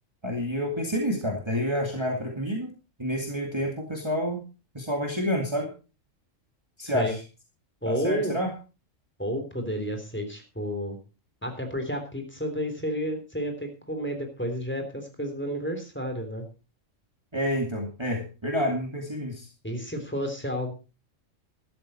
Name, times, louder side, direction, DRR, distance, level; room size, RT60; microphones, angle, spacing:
voice 1, 0.2-2.7 3.0-4.4 4.7-5.7 6.8-7.2 7.8-8.5 17.3-19.5, equal, 20° right, 1 dB, 2.2 m, -28 dB
voice 2, 6.8-7.1 7.8-8.4 9.2-11.0 11.4-16.5 19.6-20.7, equal, 10° left, 4 dB, 3.5 m, -31 dB
13.5 x 12.5 x 4.3 m, 0.32 s
omnidirectional pair, 1.3 m